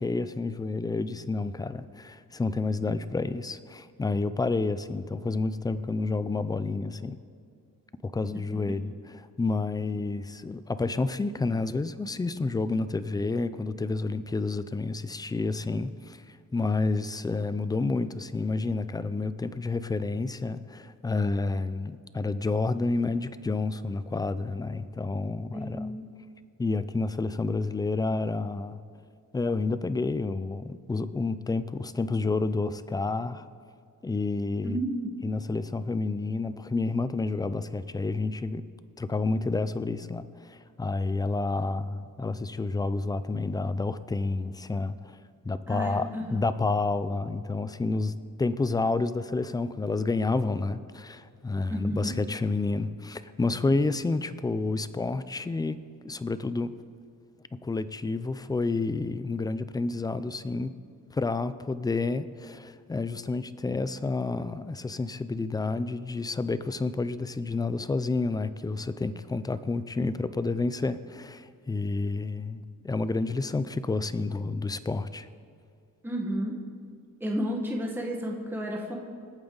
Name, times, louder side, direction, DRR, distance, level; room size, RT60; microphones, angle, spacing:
voice 1, 0.0-7.2 8.0-16.2 16.5-26.0 26.6-28.8 29.3-33.5 34.0-34.8 35.2-38.6 39.0-45.2 45.4-48.1 48.4-56.7 57.6-60.7 61.1-75.3, left 3 dB, 10° left, 13 dB, 0.3 m, -29 dB
voice 2, 25.5-26.1 34.6-35.1 45.7-46.4 51.7-52.1 76.0-76.6 77.2-79.0, equal, 5° right, -1 dB, 1.4 m, -32 dB
26.0 x 8.8 x 3.9 m, 2.3 s
cardioid pair, 160°, 33 cm